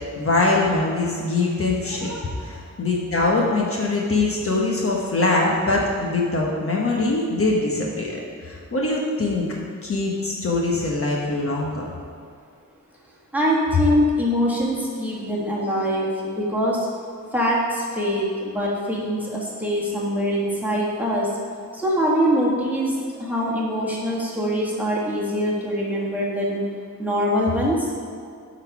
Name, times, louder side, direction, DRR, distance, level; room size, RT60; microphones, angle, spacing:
voice 1, 0.2-9.5 9.8-11.9, left 2 dB, 45° left, -2 dB, 1.1 m, -23 dB
voice 2, 13.3-16.9 17.3-21.3 21.7-26.6 27.0-27.9, equal, 5° right, -5 dB, 1.6 m, -23 dB
11.5 x 4.1 x 5.9 m, 2.2 s
wide cardioid pair, 170°, 33 cm